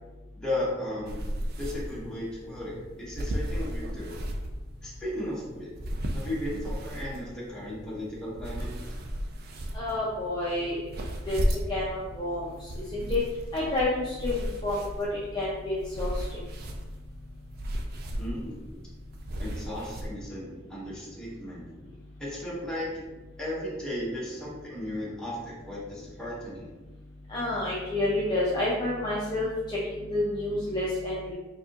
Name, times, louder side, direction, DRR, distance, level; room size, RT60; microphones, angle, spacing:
voice 1, 0.4-1.2 1.6-4.3 4.8-5.7 6.1-8.7 18.2-18.6 19.4-21.6 22.2-22.9 23.4-26.7, left 1 dB, 5° left, -8 dB, 1.2 m, -35 dB
sound 1, 1.1-20.1, equal, 55° right, 0.4 m, -35 dB
voice 2, 9.7-10.8 11.3-11.4 11.7-12.4 12.9-13.2 13.5-15.1 15.3-16.1 27.3-31.3, left 2 dB, 20° left, -7 dB, 0.6 m, -29 dB
4.6 x 2.8 x 2.5 m, 1.2 s
head